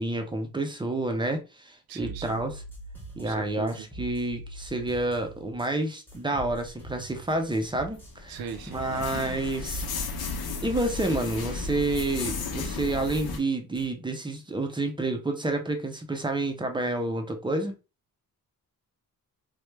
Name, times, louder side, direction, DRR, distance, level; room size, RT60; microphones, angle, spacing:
voice 1, 0.0-2.6 3.2-8.4 8.7-9.9 10.6-17.7, right 2 dB, 15° right, 0.4 m, -29 dB
voice 2, 1.9-2.4 3.2-3.9 8.3-9.1, right 7 dB, 75° right, 0.5 m, -40 dB
sound 1, 2.0-5.7 6.1-8.2 8.5-13.4 13.8-13.9, right 2 dB, 5° left, 0.8 m, -43 dB
sound 2, 7.5-13.4, left 4 dB, 90° left, 0.7 m, -34 dB
3.2 x 2.1 x 3.1 m
wide cardioid pair, 150°, 36 cm